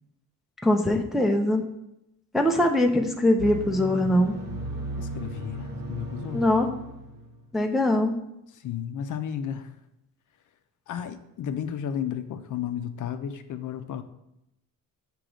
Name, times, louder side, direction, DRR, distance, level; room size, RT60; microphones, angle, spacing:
voice 1, 0.6-1.6 2.3-4.4 6.3-6.7 7.5-8.2, left 1 dB, ahead, 3 dB, 0.4 m, -22 dB
sound 1, 3.4-7.5, right 1 dB, 65° right, 1.5 m, -36 dB
voice 2, 5.0-6.5 8.5-9.7 10.9-14.0, left 8 dB, 60° left, 9 dB, 0.5 m, -33 dB
7.5 x 3.0 x 4.9 m, 0.84 s
cardioid pair, 155°, 35 cm